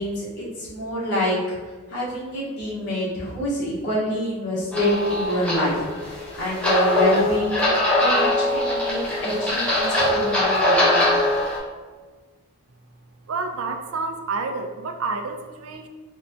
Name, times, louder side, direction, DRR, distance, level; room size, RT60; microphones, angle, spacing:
voice 1, 0.0-1.4 1.9-11.2, equal, 50° left, -8 dB, 0.9 m, -27 dB
sound 1, 4.7-11.6, left 1 dB, 5° left, 0.5 m, -22 dB
voice 2, 13.3-15.9, right 4 dB, 70° right, 6 dB, 0.4 m, -29 dB
4.1 x 2.1 x 2.6 m, 1.4 s
head